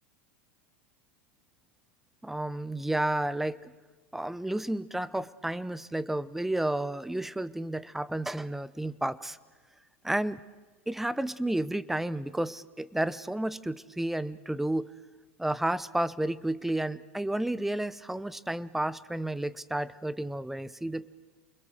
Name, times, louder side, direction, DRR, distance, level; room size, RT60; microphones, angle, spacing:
voice 1, 2.2-3.6 4.1-9.4 10.0-10.4 10.9-14.9 15.4-21.1, right 1 dB, 5° right, 18 dB, 0.7 m, -31 dB
29.5 x 22.0 x 6.6 m, 1.4 s
supercardioid pair, 120°, 7 cm